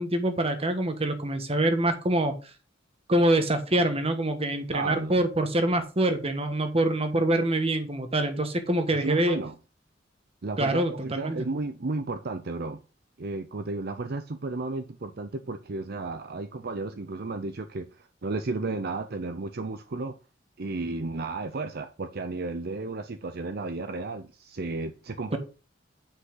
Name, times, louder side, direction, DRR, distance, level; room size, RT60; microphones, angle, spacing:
voice 1, 0.0-2.3 3.1-9.4 10.6-11.5 25.3-25.4, right 1 dB, 30° right, 1.3 m, -25 dB
voice 2, 4.7-5.3 8.9-9.6 10.4-12.8 13.2-20.2 20.6-25.4, right 3 dB, 55° right, 0.7 m, -33 dB
8.7 x 5.5 x 3.9 m
head